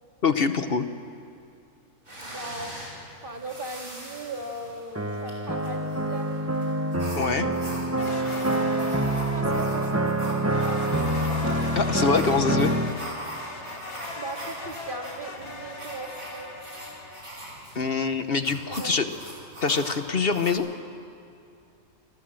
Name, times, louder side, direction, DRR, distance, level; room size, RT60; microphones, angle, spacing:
voice 1, 0.2-0.9 7.2-7.5 11.7-12.7 17.7-19.1 19.6-20.7, left 4 dB, 45° left, 9 dB, 1.0 m, -24 dB
sound 1, 2.1-20.5, right 1 dB, 60° right, 6.2 m, -41 dB
voice 2, 2.2-2.9 3.2-6.3 9.3-11.3 14.2-16.5 18.7-19.0, right 2 dB, 35° right, 3 dB, 2.1 m, -38 dB
sound 2, 5.0-12.9, right 1 dB, 10° right, 0.9 m, -26 dB
sound 3, 8.0-9.9 10.5-17.2, left 2 dB, 65° left, 3.0 m, -39 dB
28.0 x 21.5 x 7.7 m, 2.5 s
omnidirectional pair, 1.6 m